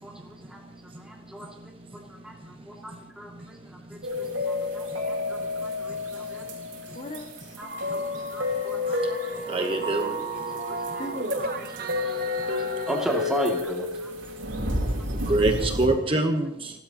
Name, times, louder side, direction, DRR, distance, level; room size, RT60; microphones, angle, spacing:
voice 1, 0.0-0.6 1.0-7.0 7.6-10.1 10.5-11.1 11.6-14.1 15.3-15.4, equal, 5° right, -1 dB, 2.4 m, -37 dB
sound 1, 4.0-15.9, left 2 dB, 75° right, 4.4 m, -31 dB
voice 2, 6.9-8.2 11.0-11.8, left 1 dB, 35° left, 3 dB, 1.8 m, -41 dB
sound 2, 7.6-13.6, right 2 dB, 50° right, 1.2 m, -35 dB
voice 3, 9.5-10.1 15.3-16.7, right 2 dB, 25° right, 4 dB, 1.1 m, -24 dB
29.5 x 12.5 x 3.0 m, 0.91 s
head